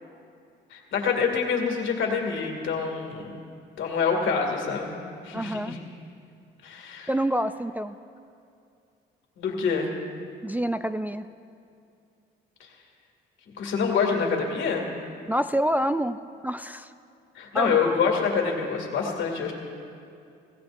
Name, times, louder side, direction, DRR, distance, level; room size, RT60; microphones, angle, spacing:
voice 1, 0.7-3.3 3.8-5.0 5.2-5.8 6.6-7.1 9.4-10.0 13.6-14.9 17.3-19.5, left 5 dB, 75° left, 1 dB, 2.4 m, -26 dB
voice 2, 5.3-5.8 7.1-8.0 10.4-11.3 15.3-16.2 16.4-16.9 17.5-17.8, right 1 dB, 10° right, 10 dB, 0.3 m, -27 dB
24.5 x 16.0 x 2.6 m, 2.4 s
cardioid pair, 90°, 20 cm